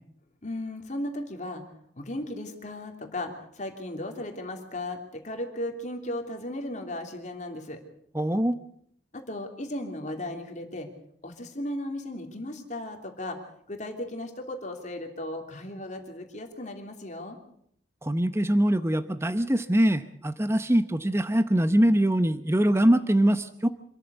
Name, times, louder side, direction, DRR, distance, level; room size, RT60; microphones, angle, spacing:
voice 1, 0.4-1.6 2.0-7.8 9.1-10.9 11.2-13.4 13.7-17.4, left 1 dB, 40° left, 4 dB, 3.1 m, -36 dB
voice 2, 8.1-8.6 18.0-23.7, right 1 dB, 15° right, 10 dB, 0.8 m, -23 dB
26.5 x 14.0 x 8.2 m, 0.68 s
head